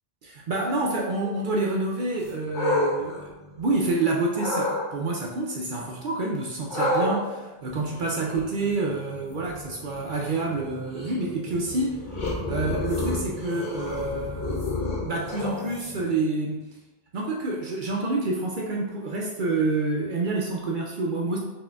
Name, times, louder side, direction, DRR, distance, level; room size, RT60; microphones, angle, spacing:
voice 1, 0.2-12.0 12.5-14.6 15.0-16.7 17.1-21.4, right 2 dB, 60° right, -2 dB, 0.6 m, -28 dB
sound 1, 2.2-3.9 4.3-4.8 6.7-16.2, left 1 dB, 45° left, 0.8 m, -31 dB
4.2 x 2.9 x 2.3 m, 1.0 s
omnidirectional pair, 1.2 m